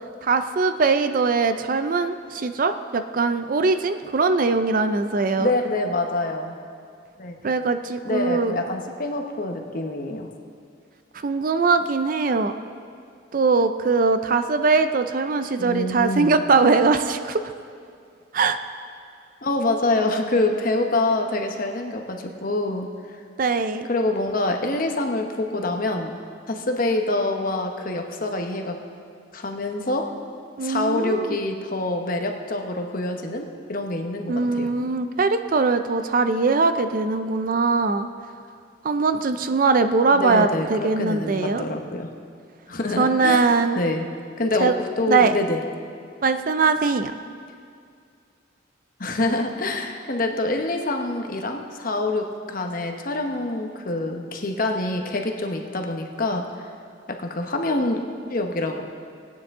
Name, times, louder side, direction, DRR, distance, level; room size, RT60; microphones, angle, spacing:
voice 1, 0.2-5.5 7.4-8.6 11.2-12.5 13.3-17.5 18.3-18.6 23.4-23.9 30.6-31.4 34.3-38.1 38.8-41.6 43.0-43.8 44.6-44.7 45.1-45.3 46.2-47.1, right 4 dB, 45° right, 9 dB, 0.4 m, -21 dB
voice 2, 5.4-6.6 7.2-7.5 8.0-10.3 15.6-16.3 19.4-23.2 23.9-26.2 26.5-28.8 29.3-30.1 30.6-34.7 40.1-42.1 42.7-44.1 44.4-45.6 49.0-56.4 57.1-58.0 58.3-58.8, left 2 dB, 45° left, 3 dB, 0.9 m, -26 dB
18.5 x 9.3 x 3.6 m, 2.3 s
head